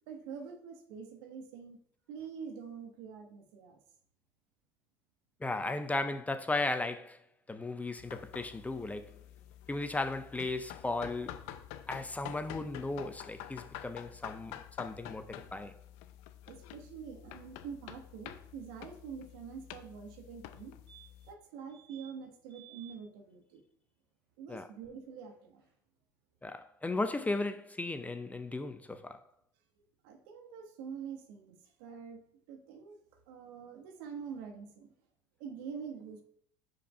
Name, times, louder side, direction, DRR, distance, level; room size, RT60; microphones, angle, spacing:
voice 1, 0.1-1.8 2.1-3.8 16.5-20.8 21.3-23.6 24.4-25.6 30.0-33.0 33.3-34.9 35.4-36.2, right 6 dB, 70° right, 1.2 m, -46 dB
voice 2, 5.4-7.2 7.5-9.1 9.7-11.4 11.9-15.7 24.5-24.7 26.4-29.2, left 2 dB, 15° left, 0.5 m, -36 dB
sound 1, 8.0-21.3, left 11 dB, 65° left, 0.6 m, -48 dB
sound 2, 20.6-20.7 20.9-21.4 21.7-22.1 22.5-22.9 25.3-25.4 25.6-25.7, right 13 dB, 90° right, 1.6 m, -56 dB
5.1 x 4.4 x 5.2 m
hypercardioid pair, 85°, 12 cm